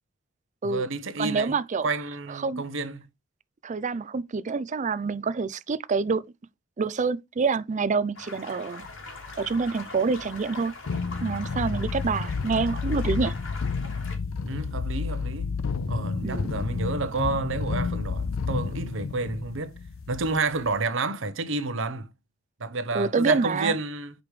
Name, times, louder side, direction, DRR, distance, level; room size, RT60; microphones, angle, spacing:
voice 1, 0.6-1.6 1.8-3.0 11.7-11.9 14.4-15.5 15.9-19.7 20.1-22.1 22.6-24.1, right 3 dB, 70° right, 0.9 m, -30 dB
voice 2, 1.2-1.9 2.4-2.6 3.6-6.2 6.8-8.8 9.4-10.7 11.2-13.3 16.2-16.5 22.9-23.7, right 4 dB, 40° right, 0.4 m, -27 dB
sound 1, 8.2-14.2, left 3 dB, 70° left, 2.8 m, -42 dB
sound 2, 8.8-9.7 10.2-10.5 10.9-20.8, left 4 dB, 90° left, 0.6 m, -31 dB
5.1 x 4.8 x 4.9 m
head